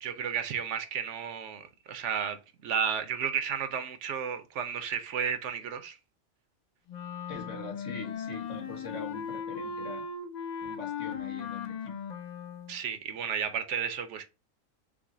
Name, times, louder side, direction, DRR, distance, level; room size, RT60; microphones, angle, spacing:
voice 1, 0.0-6.0 12.7-14.3, right 7 dB, 70° right, 0.9 m, -33 dB
Wind instrument woodwind instrument, 6.9-12.8, left 6 dB, 55° left, 0.5 m, -38 dB
voice 2, 7.3-10.1 10.6-12.0, left 4 dB, 70° left, 1.5 m, -42 dB
6.1 x 2.0 x 3.7 m
omnidirectional pair, 1.3 m